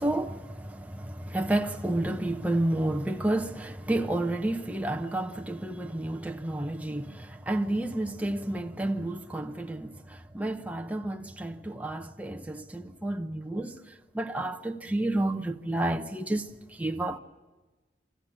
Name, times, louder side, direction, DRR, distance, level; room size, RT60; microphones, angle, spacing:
voice 1, 0.0-13.8 14.1-17.2, right 1 dB, 10° right, 0.8 m, -30 dB
25.5 x 15.0 x 8.7 m
head